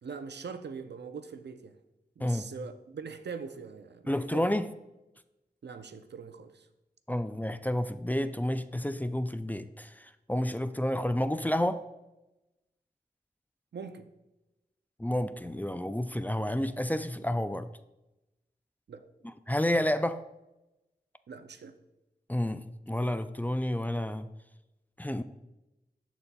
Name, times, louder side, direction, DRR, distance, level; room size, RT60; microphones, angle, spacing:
voice 1, 0.0-1.7 2.2-4.5 5.6-6.7 13.7-14.1 18.9-19.1 21.3-21.8, right 5 dB, 90° right, 0.5 m, -42 dB
voice 2, 4.1-4.7 7.1-11.8 15.0-17.7 19.2-20.2 22.3-24.3 25.0-25.2, left 1 dB, 10° left, 0.3 m, -30 dB
12.5 x 4.1 x 2.2 m
wide cardioid pair, 45°, 17 cm